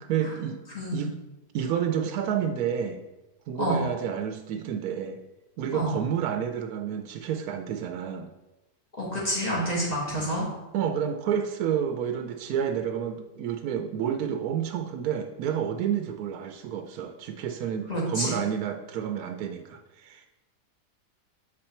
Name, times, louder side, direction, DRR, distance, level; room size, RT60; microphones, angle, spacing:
voice 1, 0.1-0.6 0.9-1.2 1.5-3.0 3.5-5.2 5.6-8.3 10.2-10.3 10.7-20.3, right 8 dB, 85° right, 6 dB, 1.1 m, -30 dB
voice 2, 0.7-1.1 3.6-3.8 5.7-5.9 9.0-10.5 17.9-18.4, equal, 25° left, -5 dB, 2.1 m, -28 dB
6.6 x 4.3 x 4.3 m, 1.0 s
omnidirectional pair, 1.5 m